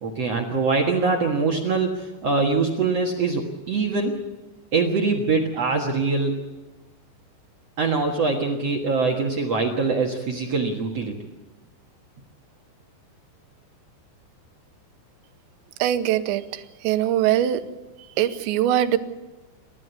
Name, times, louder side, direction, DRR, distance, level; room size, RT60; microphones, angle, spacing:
voice 1, 0.0-4.1 4.7-6.4 7.8-11.2, right 4 dB, 60° right, 1 dB, 1.7 m, -23 dB
voice 2, 15.8-17.6 18.2-19.0, right 11 dB, 85° right, 10 dB, 3.2 m, -22 dB
28.0 x 13.0 x 8.2 m, 1.1 s
omnidirectional pair, 5.2 m